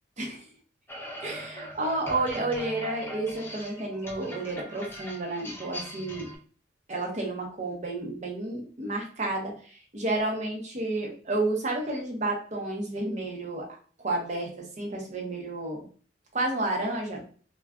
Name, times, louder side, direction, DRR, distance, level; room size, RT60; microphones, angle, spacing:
voice 1, 0.2-0.5 1.2-6.3 6.9-13.7 14.0-15.8 16.3-17.2, right 2 dB, 40° right, -1 dB, 0.8 m, -31 dB
sound 1, 0.9-6.4, equal, 10° left, 0.5 m, -41 dB
2.4 x 2.4 x 3.3 m, 0.42 s
head